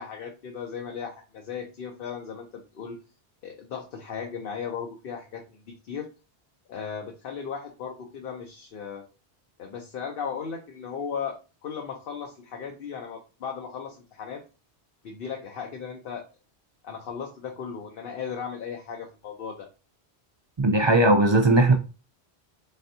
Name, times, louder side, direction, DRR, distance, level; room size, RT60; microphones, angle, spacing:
voice 1, 0.0-3.0 3.4-6.1 6.7-9.1 9.6-11.4 11.6-14.4 15.0-16.2 16.8-19.7, left 6 dB, 65° left, 0.8 m, -36 dB
voice 2, 20.6-21.7, right 2 dB, 50° right, 0.3 m, -18 dB
4.1 x 3.4 x 2.6 m
omnidirectional pair, 1.1 m